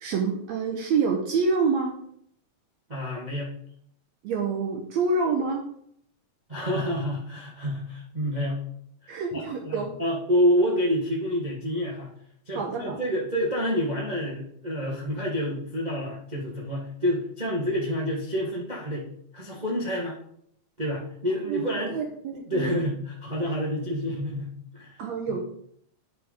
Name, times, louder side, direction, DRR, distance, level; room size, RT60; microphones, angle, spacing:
voice 1, 0.0-2.0 4.2-5.6 9.1-10.0 12.6-13.0 21.5-22.8 25.0-25.4, right 4 dB, 75° right, 2 dB, 2.0 m, -27 dB
voice 2, 2.9-3.5 6.5-8.6 9.0-12.1 12.5-19.1 19.3-20.2 20.8-22.0 22.4-25.0, equal, 35° right, -4 dB, 0.6 m, -28 dB
10.5 x 4.0 x 4.9 m, 0.68 s
omnidirectional pair, 3.4 m